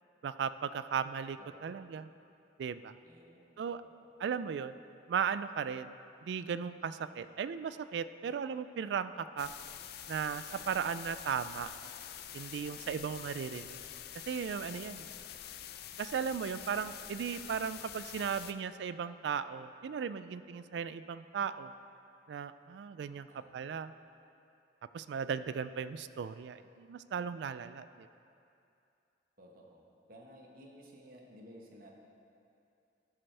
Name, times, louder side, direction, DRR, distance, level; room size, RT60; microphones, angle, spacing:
voice 1, 0.2-2.1 2.6-2.9 3.6-3.8 4.2-4.7 5.1-5.9 6.2-9.5 10.1-11.7 12.3-13.8 14.3-15.1 16.0-21.7 22.3-23.3 23.5-23.9 24.9-28.1, right 7 dB, 65° right, 14 dB, 0.3 m, -36 dB
voice 2, 1.4-1.9 3.0-4.1 10.5-10.9 12.6-13.0 14.7-14.8 23.3-23.7 29.4-31.9, equal, 50° right, 0 dB, 1.2 m, -56 dB
sound 1, 9.4-18.5, left 10 dB, 60° left, 0.4 m, -46 dB
13.5 x 7.6 x 3.3 m, 2.6 s
head